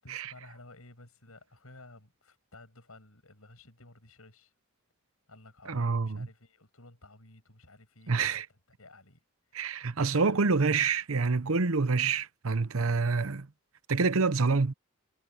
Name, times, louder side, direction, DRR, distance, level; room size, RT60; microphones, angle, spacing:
voice 1, 0.0-4.5 5.3-8.4 8.8-9.2 9.5-10.4, left 2 dB, 85° left, 7.3 m, -54 dB
voice 2, 5.7-6.3 8.1-8.5 9.5-13.5 13.9-14.7, right 4 dB, 80° right, 0.8 m, -27 dB
head